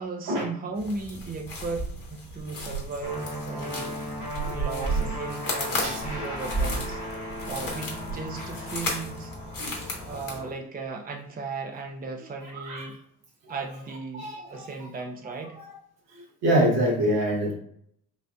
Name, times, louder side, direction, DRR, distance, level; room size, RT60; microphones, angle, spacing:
voice 1, 0.0-3.9 4.3-9.3 10.0-13.0 13.5-15.6, right 4 dB, 20° right, 3 dB, 0.7 m, -36 dB
sound 1, 0.8-10.4, right 1 dB, 45° left, 1.4 m, -33 dB
sound 2, 3.0-10.5, equal, 85° left, 1.6 m, -36 dB
voice 2, 9.6-9.9 12.4-12.9 13.4-13.5 14.1-14.7 15.5-15.8 16.4-17.5, right 1 dB, 70° right, -2 dB, 1.4 m, -26 dB
6.2 x 2.5 x 2.3 m, 0.67 s
hypercardioid pair, 45°, 45 cm